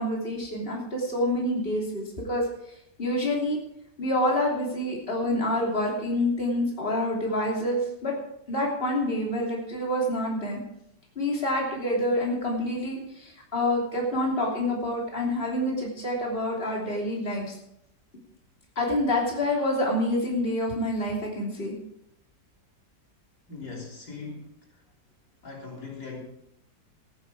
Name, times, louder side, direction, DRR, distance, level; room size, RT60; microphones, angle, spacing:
voice 1, 0.0-3.6 4.0-8.1 8.5-10.6 11.1-17.6 18.7-21.7, left 1 dB, 35° left, -2 dB, 3.3 m, -27 dB
voice 2, 23.5-24.5 25.4-26.2, left 4 dB, 75° left, -2 dB, 4.1 m, -39 dB
14.5 x 11.0 x 4.8 m, 0.77 s
omnidirectional pair, 1.8 m